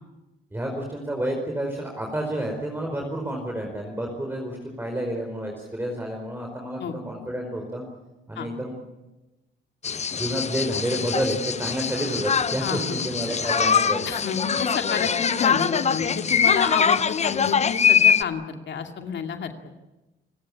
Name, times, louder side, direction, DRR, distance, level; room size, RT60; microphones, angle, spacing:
voice 1, 0.5-7.8 8.3-8.7 10.1-14.1, equal, 10° right, 1 dB, 4.8 m, -29 dB
sound 1, 9.8-18.2, left 7 dB, 35° left, 0.8 m, -23 dB
voice 2, 12.6-13.0 13.3-13.4 14.1-19.5, left 7 dB, 65° left, 5 dB, 2.4 m, -29 dB
29.5 x 16.0 x 8.7 m, 1.0 s
cardioid pair, 90°, 20 cm